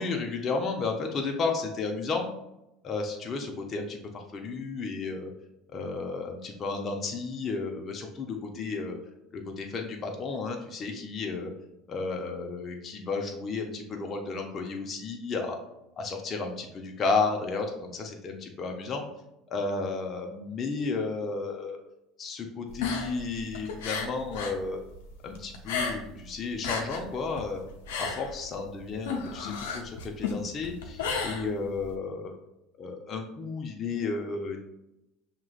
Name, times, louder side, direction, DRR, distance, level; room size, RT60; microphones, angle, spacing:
voice 1, 0.0-2.3 2.8-5.3 5.7-9.0 9.3-11.5 11.9-15.6 16.0-19.0 19.5-21.8 22.2-24.8 25.2-27.6 28.0-32.3 32.8-34.6, left 4 dB, 40° left, 2 dB, 0.7 m, -33 dB
sound 1, 22.7-24.6 24.9-26.2 26.5-31.9, left 5 dB, 80° left, 0.7 m, -33 dB
5.9 x 3.0 x 2.4 m, 0.90 s
hypercardioid pair, 80°, 0 cm